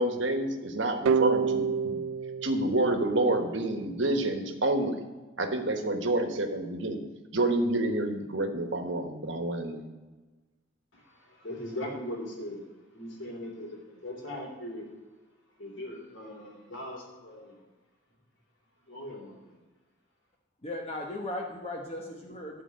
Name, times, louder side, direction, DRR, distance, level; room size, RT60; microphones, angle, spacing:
voice 1, 0.0-2.0 2.4-5.0 5.4-7.0 7.3-9.9, right 1 dB, 70° right, 6 dB, 1.3 m, -28 dB
sound 1, 1.1-3.9, right 6 dB, 85° right, 0.4 m, -29 dB
voice 2, 10.9-14.9 15.6-17.6 18.9-19.5, left 1 dB, 75° left, -1 dB, 3.4 m, -40 dB
voice 3, 20.6-22.6, left 1 dB, 30° left, 0 dB, 1.0 m, -37 dB
13.0 x 4.7 x 7.6 m, 1.2 s
head